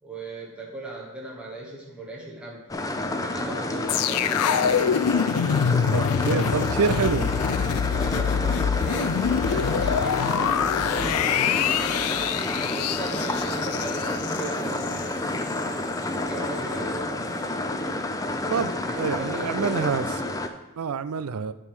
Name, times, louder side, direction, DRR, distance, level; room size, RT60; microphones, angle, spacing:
voice 1, 0.0-2.7 3.2-4.4 6.0-6.8 7.8-15.2 16.1-17.5 18.9-20.1, right 2 dB, 5° right, -4 dB, 1.2 m, -38 dB
sound 1, 2.7-20.5, left 2 dB, 15° left, 0.4 m, -29 dB
sound 2, 3.9-15.1 15.4-15.6, left 7 dB, 80° left, 0.3 m, -25 dB
voice 2, 5.9-7.3 18.5-20.0 20.8-21.5, right 6 dB, 75° right, 14 dB, 0.4 m, -27 dB
9.9 x 3.8 x 6.1 m, 1.0 s
head